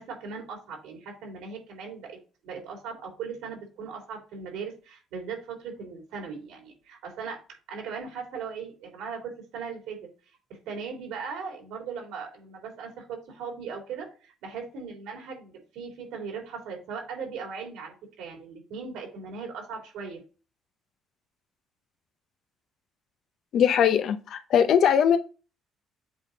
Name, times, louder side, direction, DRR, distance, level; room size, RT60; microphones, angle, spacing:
voice 1, 0.0-2.2 2.4-7.4 7.7-10.1 10.5-20.2, right 5 dB, 85° right, 3.0 m, -38 dB
voice 2, 23.5-25.2, left 8 dB, 55° left, 0.7 m, -21 dB
7.9 x 3.8 x 4.0 m
cardioid pair, 140°, 0 cm